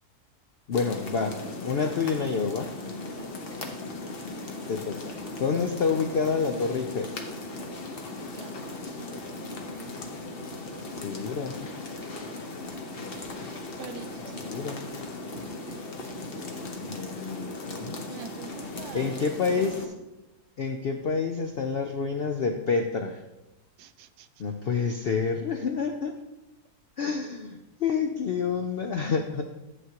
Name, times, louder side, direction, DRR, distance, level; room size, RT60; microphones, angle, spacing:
voice 1, 0.7-2.7 4.7-5.1 5.4-7.2 11.0-11.6 14.4-14.8 16.3-18.0 18.9-19.9 20.6-23.2 24.4-26.1 27.0-29.4, left 5 dB, 70° left, 4 dB, 0.5 m, -28 dB
sound 1, 0.7-19.9, left 2 dB, 45° left, 1.0 m, -38 dB
voice 2, 8.3-8.7 10.7-11.0 13.8-14.4 15.7-15.9 18.1-19.3 23.8-24.3, right 10 dB, 80° right, 11 dB, 1.1 m, -45 dB
11.0 x 7.5 x 2.9 m, 0.95 s
omnidirectional pair, 1.7 m